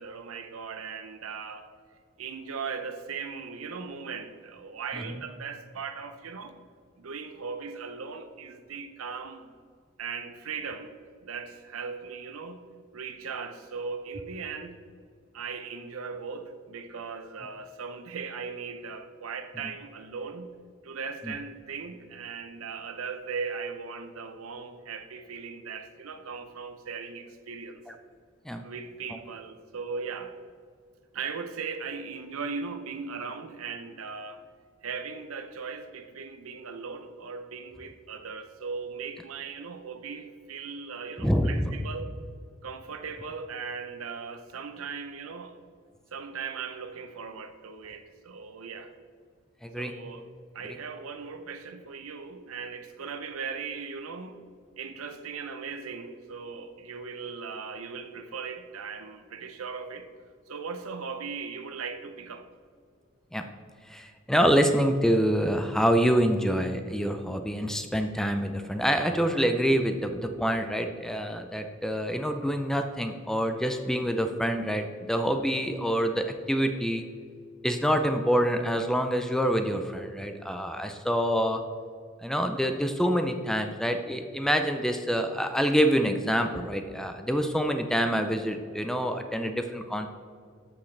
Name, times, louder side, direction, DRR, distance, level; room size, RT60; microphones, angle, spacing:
voice 1, 0.0-1.7 2.2-6.6 7.0-9.5 10.0-12.7 12.9-14.8 15.3-20.6 20.8-27.8 28.6-30.4 31.1-34.5 34.8-42.1 42.6-45.6 46.1-48.9 49.8-50.3 50.5-54.5 54.8-60.1 60.5-62.5, right 5 dB, 90° right, 0.7 m, -38 dB
voice 2, 41.2-41.7 49.6-49.9 63.3-63.5 63.9-77.0 77.6-81.6 82.2-90.1, equal, ahead, 0.4 m, -26 dB
13.0 x 6.3 x 3.3 m
head